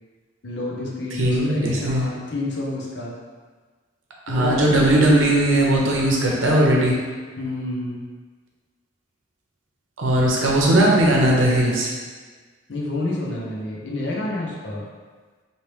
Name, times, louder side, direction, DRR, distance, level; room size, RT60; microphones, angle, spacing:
voice 1, 0.4-3.1 4.3-4.7 5.0-5.1 5.4-5.5 7.4-8.0 12.7-14.9, left 2 dB, 60° left, -3 dB, 0.7 m, -29 dB
voice 2, 1.2-2.1 4.3-7.0 10.0-11.9, right 1 dB, 80° right, -3 dB, 0.7 m, -18 dB
3.2 x 2.8 x 3.0 m, 1.5 s
head